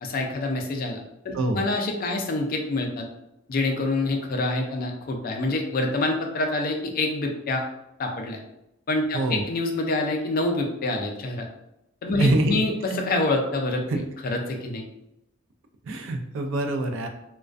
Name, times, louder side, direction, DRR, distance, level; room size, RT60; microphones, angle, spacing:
voice 1, 0.0-3.1 3.5-7.6 8.0-8.4 8.9-11.5 12.0-13.8 14.2-14.8, left 2 dB, 45° left, 3 dB, 0.4 m, -26 dB
voice 2, 1.3-1.6 9.1-9.5 12.2-12.6 13.9-14.0 15.8-17.1, right 2 dB, 70° right, 5 dB, 0.4 m, -24 dB
2.4 x 2.1 x 2.3 m, 0.84 s
head